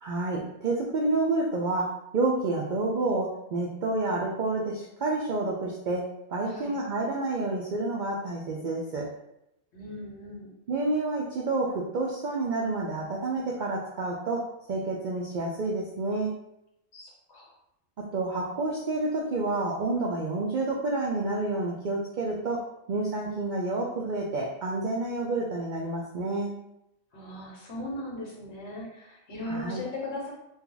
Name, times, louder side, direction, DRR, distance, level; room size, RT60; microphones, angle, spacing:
voice 1, 0.0-9.1 10.7-16.3 18.0-26.5 29.5-29.8, right 2 dB, 70° right, -2 dB, 0.4 m, -29 dB
voice 2, 6.4-6.8 9.7-10.5 16.9-17.5 27.1-30.3, left 1 dB, 60° left, -2 dB, 1.1 m, -38 dB
2.7 x 2.3 x 3.8 m, 0.82 s
omnidirectional pair, 1.3 m